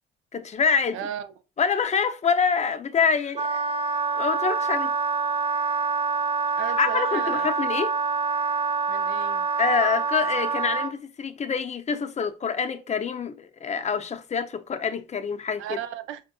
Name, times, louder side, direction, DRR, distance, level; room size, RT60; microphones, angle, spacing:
voice 1, 0.3-1.0 1.6-3.6 4.1-4.9 6.8-7.9 9.6-15.8, left 6 dB, 35° left, 0.5 m, -26 dB
voice 2, 0.9-1.3 6.6-7.5 8.9-9.5 15.6-16.2, right 10 dB, 85° right, 0.5 m, -35 dB
Wind instrument woodwind instrument, 3.4-10.9, right 4 dB, 30° right, 0.4 m, -26 dB
5.0 x 2.5 x 2.2 m
cardioid pair, 90°, 20 cm